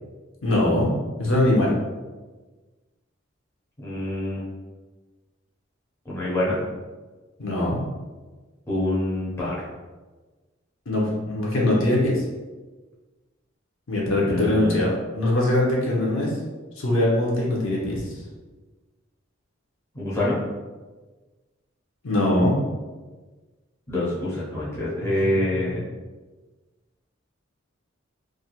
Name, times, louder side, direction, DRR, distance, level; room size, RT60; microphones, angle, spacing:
voice 1, 0.4-0.9 1.2-1.7 7.4-7.8 10.9-12.2 13.9-16.3 16.8-18.0 22.0-22.5, left 1 dB, 70° left, -4 dB, 0.6 m, -22 dB
voice 2, 3.8-4.4 6.1-6.6 8.7-9.6 14.2-14.8 19.9-20.4 23.9-25.8, left 1 dB, 15° left, -8 dB, 0.5 m, -26 dB
2.4 x 2.1 x 2.8 m, 1.3 s
head